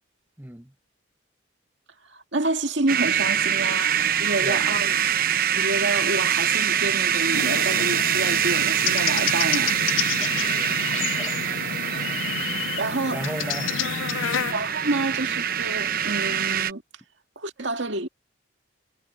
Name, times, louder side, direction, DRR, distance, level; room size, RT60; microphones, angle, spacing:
voice 1, 0.4-0.7 4.3-4.6 10.2-11.6 11.9-12.2 13.1-13.8, right 1 dB, 10° right, 1.0 m, -37 dB
voice 2, 2.1-5.0 5.5-9.8 12.8-13.3 14.5-16.8 17.4-18.1, right 2 dB, 70° right, 2.1 m, -28 dB
sound 1, 2.9-16.7, right 9 dB, 45° right, 0.9 m, -24 dB
sound 2, 7.3-14.5, left 9 dB, 85° left, 0.5 m, -30 dB
head